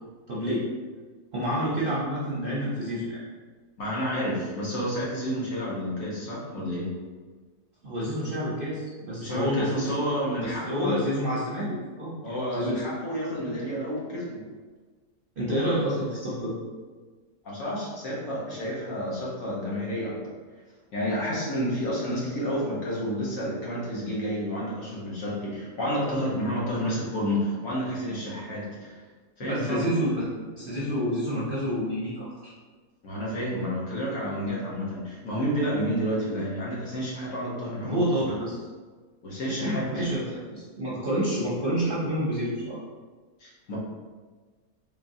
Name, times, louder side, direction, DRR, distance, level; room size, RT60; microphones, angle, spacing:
voice 1, 0.3-0.7 1.3-3.2 7.8-9.9 10.4-12.1 12.5-12.8 13.5-13.6 15.4-16.6 29.4-30.3 30.6-32.5 37.8-38.6 39.6-42.8, equal, 50° right, -7 dB, 0.6 m, -28 dB
voice 2, 3.8-7.0 9.2-11.0 12.2-14.4 17.4-20.3 20.9-28.9 29.4-29.8 33.0-38.2 39.2-40.0 43.4-43.8, equal, 60° left, -5 dB, 1.4 m, -30 dB
3.9 x 3.4 x 2.6 m, 1.4 s
omnidirectional pair, 1.7 m